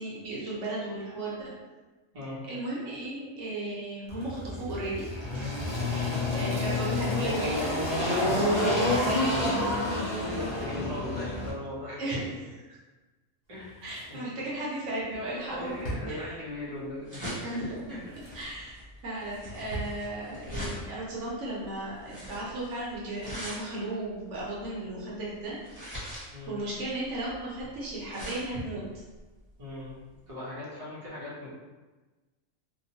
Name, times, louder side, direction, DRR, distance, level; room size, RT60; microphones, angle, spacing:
voice 1, 0.0-1.5 2.5-9.6 12.0-12.3 13.8-16.4 17.4-17.8 18.3-18.7 19.0-26.1 26.5-28.8, right 2 dB, 65° right, -6 dB, 1.0 m, -35 dB
Engine, 4.1-11.5, left 2 dB, 40° left, 0.3 m, -29 dB
voice 2, 8.2-9.0 10.2-12.1 13.5-13.8 14.1-14.3 15.1-17.3 17.9-18.0 26.3-26.6 29.6-29.9 30.3-31.5, left 1 dB, 35° right, -7 dB, 0.6 m, -39 dB
Drawer open or close, 13.5-16.8 17.7-18.6 19.0-20.0 20.3-20.4, right 1 dB, 75° left, 1.1 m, -42 dB
sound 1, 15.5-30.3, equal, 15° right, 0.9 m, -42 dB
2.8 x 2.1 x 2.7 m, 1.2 s
omnidirectional pair, 1.4 m